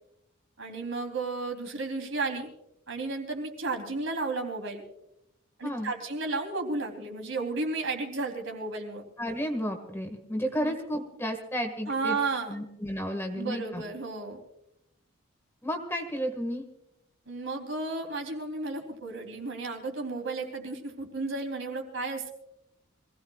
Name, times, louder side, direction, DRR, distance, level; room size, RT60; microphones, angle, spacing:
voice 1, 0.6-2.5 2.9-4.8 5.6-9.0 10.6-10.7 11.9-12.6 13.3-14.4 17.3-22.3, right 3 dB, 65° right, 3 dB, 3.4 m, -33 dB
voice 2, 9.2-12.2 12.5-13.8 15.6-16.6, equal, 10° left, 5 dB, 1.8 m, -32 dB
26.0 x 17.5 x 2.4 m, 0.83 s
head